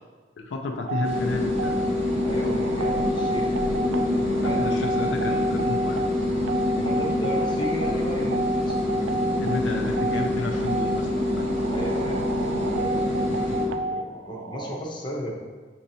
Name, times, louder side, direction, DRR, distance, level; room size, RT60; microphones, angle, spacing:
voice 1, 0.4-1.8 4.2-6.0 9.4-11.5, left 3 dB, 70° left, 3 dB, 0.4 m, -31 dB
sound 1, 0.8-14.8, right 3 dB, 90° right, 0.3 m, -32 dB
sound 2, 1.0-13.7, left 1 dB, 35° right, 0.8 m, -26 dB
voice 2, 2.2-4.8 6.8-8.7 11.7-15.3, equal, 25° left, -2 dB, 0.7 m, -35 dB
6.2 x 2.6 x 2.7 m, 1.4 s
head